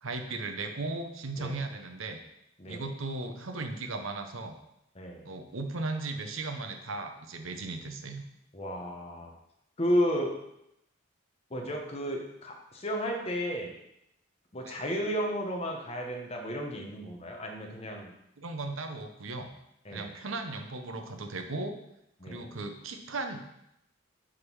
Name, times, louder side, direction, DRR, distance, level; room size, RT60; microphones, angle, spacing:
voice 1, 0.0-2.2 2.7-4.5 5.2-8.2 14.6-14.7 18.4-19.5 19.9-21.7 22.3-23.4, right 3 dB, 70° right, 6 dB, 0.8 m, -36 dB
voice 2, 4.9-5.3 8.5-9.3 9.8-10.4 11.5-13.7 14.5-18.1 19.8-20.1 22.2-22.5, equal, 30° left, 1 dB, 1.0 m, -33 dB
6.5 x 3.8 x 6.1 m, 0.82 s
head